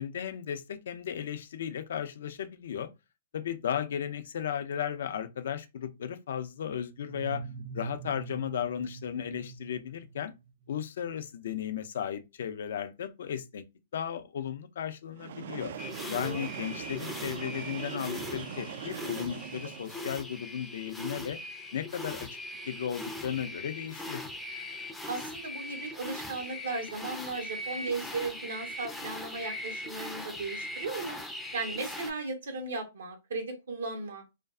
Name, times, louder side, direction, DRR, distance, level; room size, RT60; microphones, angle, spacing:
voice 1, 0.0-2.9 3.3-7.5 7.7-10.3 10.7-13.6 13.9-15.7 16.1-21.4 21.7-22.3 22.7-24.2, left 9 dB, 65° left, 0.4 m, -35 dB
sound 1, 7.0-10.7, right 5 dB, 45° right, 0.7 m, -43 dB
Train, 15.1-20.1, right 8 dB, 60° right, 0.3 m, -41 dB
sound 2, 15.8-32.1, left 1 dB, 5° left, 0.4 m, -40 dB
voice 2, 25.1-31.2 31.5-34.2, right 3 dB, 80° right, 0.8 m, -36 dB
2.5 x 2.3 x 2.3 m
hypercardioid pair, 130°, 0 cm